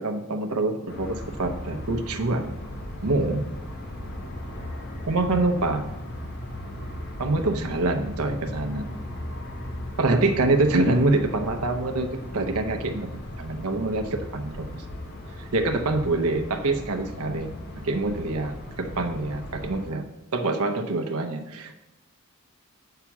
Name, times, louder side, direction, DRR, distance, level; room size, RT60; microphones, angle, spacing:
voice 1, 0.0-2.6 3.0-3.4 5.1-5.9 7.2-8.9 10.0-14.8 15.3-17.5 17.8-20.0 20.3-21.7, right 2 dB, 80° right, 6 dB, 0.7 m, -25 dB
sound 1, 0.9-19.9, left 1 dB, 45° left, 1.4 m, -37 dB
7.2 x 5.8 x 5.9 m, 1.0 s
head